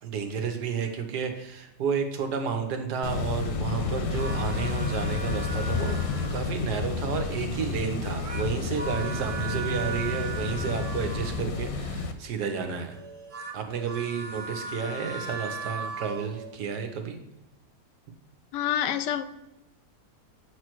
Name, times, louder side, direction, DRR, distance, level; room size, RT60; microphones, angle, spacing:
voice 1, 0.0-6.0 6.3-13.0 13.5-17.2, right 6 dB, 75° right, 5 dB, 1.5 m, -31 dB
sound 1, 3.0-12.1, left 4 dB, 65° left, 1.1 m, -31 dB
sound 2, 4.0-6.6 8.0-11.7 12.9-16.5, right 4 dB, 55° right, 0.4 m, -38 dB
voice 2, 18.5-19.2, left 10 dB, 85° left, 12 dB, 1.2 m, -27 dB
8.0 x 3.2 x 6.0 m, 0.92 s
omnidirectional pair, 1.8 m